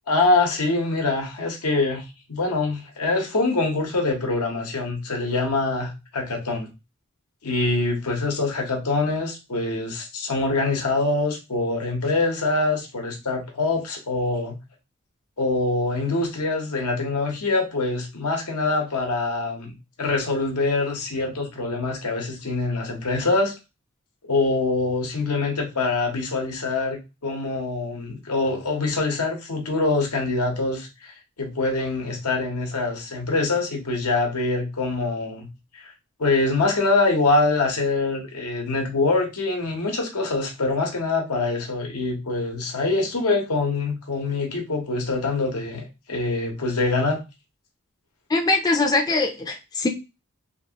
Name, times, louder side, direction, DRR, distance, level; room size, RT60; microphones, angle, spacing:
voice 1, 0.1-6.7 7.4-14.6 15.4-23.5 24.2-35.5 35.7-35.9 36.2-47.2, left 3 dB, 90° left, 2 dB, 1.0 m, -24 dB
voice 2, 48.3-49.9, left 3 dB, 15° left, 3 dB, 0.4 m, -22 dB
2.9 x 2.5 x 2.8 m, 0.26 s
head